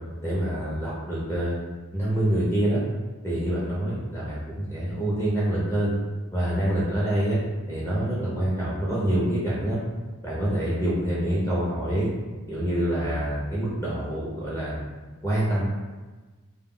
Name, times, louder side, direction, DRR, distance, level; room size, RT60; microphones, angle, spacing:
voice 1, 0.2-1.6 1.9-2.8 3.2-5.9 6.3-7.4 7.7-9.8 10.2-12.1 12.5-14.8 15.2-15.7, right 1 dB, 15° left, -7 dB, 0.5 m, -26 dB
2.1 x 2.1 x 3.6 m, 1.3 s
head